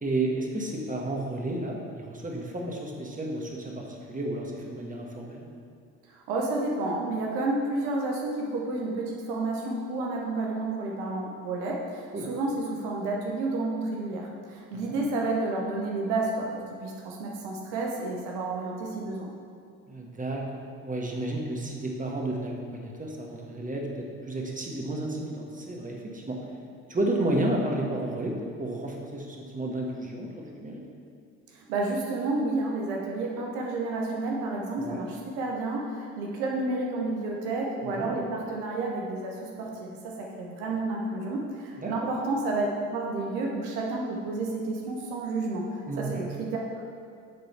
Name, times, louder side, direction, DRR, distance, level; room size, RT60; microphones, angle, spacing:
voice 1, 0.0-5.5 12.1-12.3 14.7-15.0 19.9-20.4 20.8-26.4 26.9-30.8 34.8-35.1 37.8-38.1 41.8-42.1 45.9-46.2, right 1 dB, 20° right, -1 dB, 1.4 m, -32 dB
voice 2, 6.1-19.3 31.5-45.7 46.0-46.8, right 2 dB, 80° right, -1 dB, 0.9 m, -30 dB
8.6 x 3.9 x 4.5 m, 2.3 s
hypercardioid pair, 55°, 38 cm